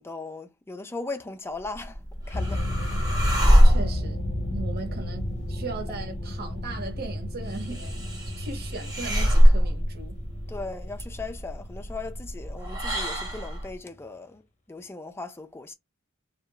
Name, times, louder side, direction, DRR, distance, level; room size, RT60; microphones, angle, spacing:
voice 1, 0.0-2.0 2.3-2.6 3.0-3.2 10.5-14.4 14.7-15.7, left 3 dB, 10° left, 0.4 m, -38 dB
sound 1, 1.6-13.7, equal, 15° right, 1.0 m, -24 dB
sound 2, 2.3-13.3, left 1 dB, 35° left, 0.7 m, -33 dB
voice 2, 3.6-8.0 8.4-10.2, right 3 dB, 45° right, 0.8 m, -38 dB
2.8 x 2.4 x 2.2 m
head